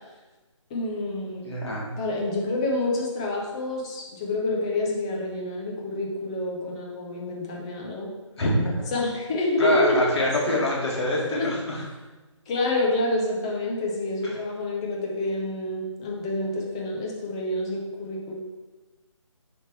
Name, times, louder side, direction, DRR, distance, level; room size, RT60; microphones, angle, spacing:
voice 1, 0.7-1.4 2.0-8.1 8.9-10.0 10.5-10.7 11.3-11.5 12.5-18.3, left 2 dB, 10° left, -2 dB, 0.5 m, -28 dB
voice 2, 1.4-2.0 8.4-8.7 9.6-11.8 14.2-14.3, equal, 55° left, -4 dB, 2.0 m, -25 dB
6.4 x 3.5 x 4.4 m, 1.2 s
figure-of-eight pair, 160°, 17 cm